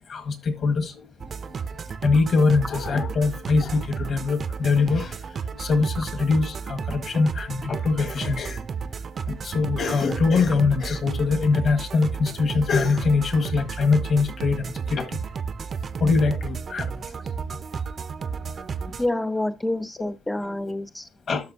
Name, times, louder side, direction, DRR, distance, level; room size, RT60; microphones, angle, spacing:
voice 1, 0.1-1.0 2.0-5.2 5.6-8.6 9.4-15.2 16.0-16.9 17.5-17.6 21.3-21.4, left 4 dB, 55° left, 1.6 m, -23 dB
sound 1, 1.2-19.1, right 6 dB, 45° right, 0.5 m, -33 dB
voice 2, 19.0-21.1, left 1 dB, 10° left, 0.3 m, -27 dB
11.5 x 5.9 x 2.8 m
cardioid pair, 90°, 0 cm